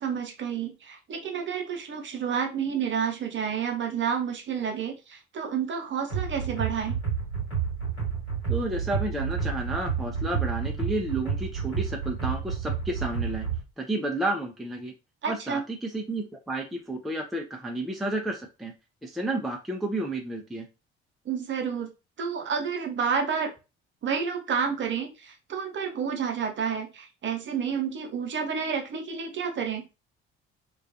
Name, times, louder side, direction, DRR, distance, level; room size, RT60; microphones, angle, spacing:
voice 1, 0.0-7.0 15.2-15.6 21.3-21.9 22.2-23.5 24.0-29.8, right 6 dB, 35° right, 3 dB, 0.7 m, -30 dB
sound 1, 6.1-13.6, right 6 dB, 85° left, 1.3 m, -30 dB
voice 2, 8.5-13.5 13.8-14.9 15.3-18.7 19.0-20.7, right 1 dB, ahead, 1 dB, 0.4 m, -31 dB
2.3 x 2.2 x 2.6 m, 0.28 s
figure-of-eight pair, 50°, 33 cm